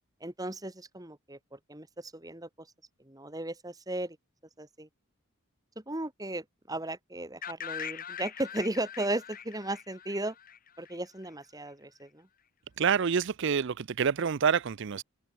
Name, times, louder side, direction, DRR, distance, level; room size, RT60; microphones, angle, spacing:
voice 1, 0.2-2.7 3.0-4.2 4.6-4.9 5.8-10.3 10.8-12.3, right 1 dB, 15° right, 2.3 m, -36 dB
sound 1, 7.4-11.3, left 8 dB, 40° left, 6.6 m, -42 dB
voice 2, 12.8-15.0, right 6 dB, 55° right, 0.5 m, -27 dB
head